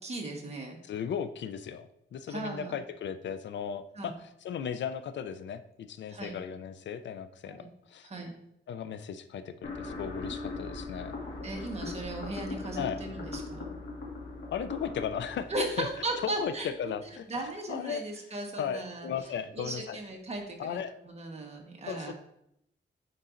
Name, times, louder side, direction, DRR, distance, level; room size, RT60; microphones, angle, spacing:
voice 1, 0.0-0.8 2.3-2.8 4.0-4.1 6.1-6.4 7.4-7.7 8.0-8.3 11.4-13.7 15.5-16.7 17.3-19.1 19.5-20.8 21.0-22.1, right 2 dB, 35° right, 1 dB, 1.2 m, -37 dB
voice 2, 0.8-8.1 8.7-11.2 12.7-13.0 14.5-15.9 16.2-16.5 16.8-17.3 17.7-18.0 18.6-20.0 20.6-20.9 21.9-22.1, left 8 dB, 70° left, 11 dB, 0.4 m, -36 dB
sound 1, 9.6-16.7, left 3 dB, 90° left, 1.7 m, -40 dB
9.6 x 3.9 x 2.5 m, 0.78 s
wide cardioid pair, 120°, 19 cm